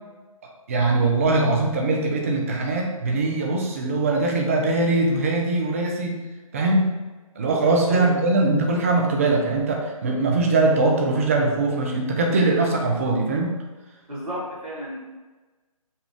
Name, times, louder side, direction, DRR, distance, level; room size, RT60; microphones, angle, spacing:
voice 1, 0.7-6.2 6.5-6.9 7.4-13.6, right 2 dB, 25° right, 0 dB, 0.5 m, -21 dB
voice 2, 7.9-8.3 14.1-15.0, right 1 dB, 80° right, -7 dB, 1.3 m, -32 dB
5.2 x 2.5 x 3.4 m, 1.2 s
figure-of-eight pair, 145°, 19 cm